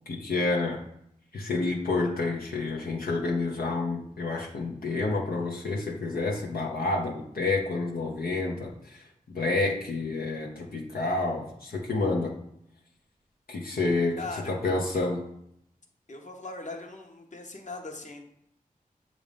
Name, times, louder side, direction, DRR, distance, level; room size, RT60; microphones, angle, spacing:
voice 1, 0.1-0.8 1.3-9.0 9.3-12.4 13.5-14.2 14.5-15.2, left 3 dB, 85° left, -1 dB, 0.7 m, -29 dB
voice 2, 14.2-14.5 14.9-15.1 16.1-18.2, left 3 dB, 55° left, 3 dB, 1.0 m, -39 dB
7.2 x 2.6 x 5.0 m, 0.75 s
cardioid pair, 45°, 15 cm